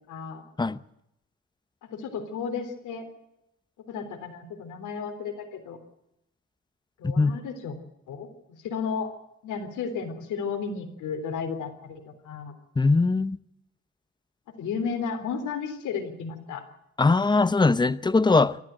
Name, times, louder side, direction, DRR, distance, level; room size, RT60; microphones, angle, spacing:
voice 1, 0.1-0.4 1.8-3.1 3.9-5.8 7.0-7.7 8.1-8.3 8.6-9.1 9.4-12.5 14.6-16.6, left 6 dB, 85° left, 3.7 m, -33 dB
voice 2, 7.0-7.4 12.8-13.4 17.0-18.6, left 3 dB, 15° left, 0.8 m, -21 dB
27.5 x 12.0 x 9.0 m
cardioid pair, 90°, 30 cm